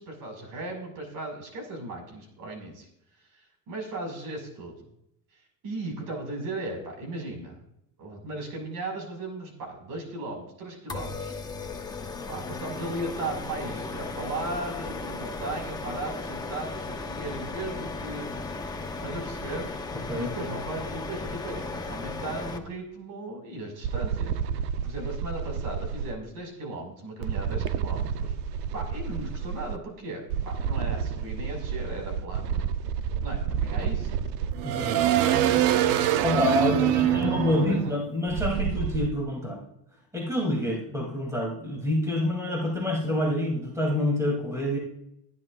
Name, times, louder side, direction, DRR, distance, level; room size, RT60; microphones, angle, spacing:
voice 1, 0.0-2.9 3.7-4.9 5.6-7.6 8.0-11.4 12.3-18.3 19.0-19.7 20.2-24.4 24.8-28.3 28.7-32.6 33.2-34.2 36.6-38.0 40.6-40.8, right 2 dB, 55° right, 2 dB, 5.9 m, -36 dB
sound 1, 10.9-22.6, left 3 dB, 10° left, 1.0 m, -36 dB
sound 2, 23.8-26.1 27.2-29.8 30.3-39.1, right 10 dB, 75° right, 0.9 m, -27 dB
voice 2, 34.6-35.1 36.2-39.6 40.1-44.8, left 1 dB, 10° right, -2 dB, 3.2 m, -27 dB
24.5 x 11.0 x 2.6 m, 0.76 s
cardioid pair, 155°, 39 cm